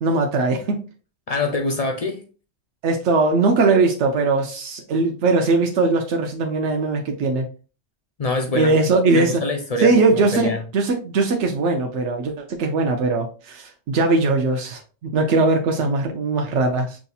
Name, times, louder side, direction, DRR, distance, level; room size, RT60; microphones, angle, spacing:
voice 1, 0.0-0.8 2.8-7.5 8.5-9.4 9.8-17.0, right 3 dB, 85° right, 1.0 m, -20 dB
voice 2, 1.3-2.2 8.2-8.7 9.1-10.6, left 2 dB, 45° left, 0.5 m, -25 dB
5.9 x 2.7 x 2.3 m
omnidirectional pair, 1.2 m